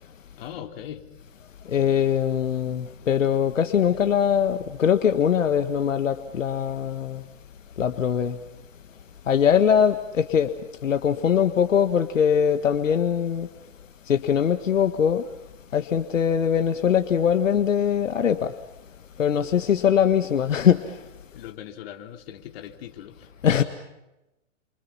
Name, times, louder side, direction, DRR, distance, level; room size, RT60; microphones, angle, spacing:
voice 1, 0.4-1.0 19.6-19.7 21.3-23.3, left 10 dB, 50° left, 3.2 m, -40 dB
voice 2, 1.7-7.2 7.8-8.4 9.3-10.5 10.8-13.5 14.1-15.2 15.7-18.5 19.2-21.0 23.4-23.6, left 8 dB, 80° left, 1.7 m, -22 dB
28.5 x 26.0 x 5.8 m
hypercardioid pair, 135°, 38 cm